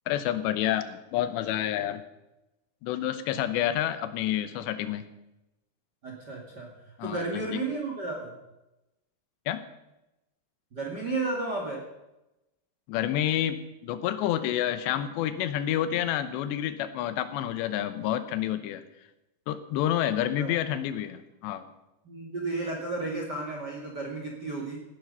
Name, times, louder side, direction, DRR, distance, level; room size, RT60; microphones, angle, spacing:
voice 1, 0.1-2.0 2.8-5.0 7.0-7.6 9.5-9.6 12.9-18.8 19.5-21.6, left 11 dB, 85° left, 12 dB, 3.1 m, -29 dB
voice 2, 6.0-6.7 7.0-8.3 10.7-11.8 20.4-20.6 22.0-24.8, right 3 dB, 35° right, 0 dB, 1.8 m, -33 dB
16.5 x 12.0 x 5.4 m, 0.94 s
omnidirectional pair, 4.9 m